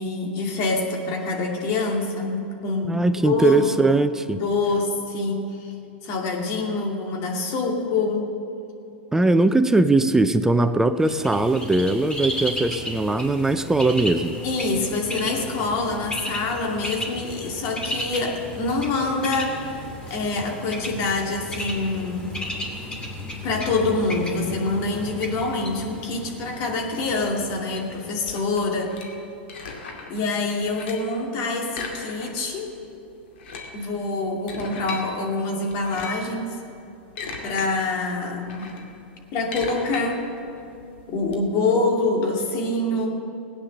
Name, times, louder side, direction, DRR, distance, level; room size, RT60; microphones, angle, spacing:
voice 1, 0.0-3.8 4.3-5.7 6.0-8.3 14.4-22.4 23.4-29.0 30.1-32.8 33.7-36.6 37.4-38.7 39.3-40.3 41.1-43.2, left 3 dB, 50° left, 1 dB, 2.5 m, -26 dB
voice 2, 2.8-4.4 9.1-14.4, right 2 dB, 10° right, 11 dB, 0.5 m, -20 dB
Bird, 11.0-28.8, left 1 dB, 15° left, 2.5 m, -34 dB
sound 1, 28.2-30.2 30.5-31.2 31.7-32.6 32.8-32.9 33.3-35.1 35.7-36.3 36.8-37.7 38.0-41.4, left 4 dB, 70° left, 2.3 m, -37 dB
17.5 x 9.3 x 6.6 m, 2.7 s
hypercardioid pair, 105°, 6 cm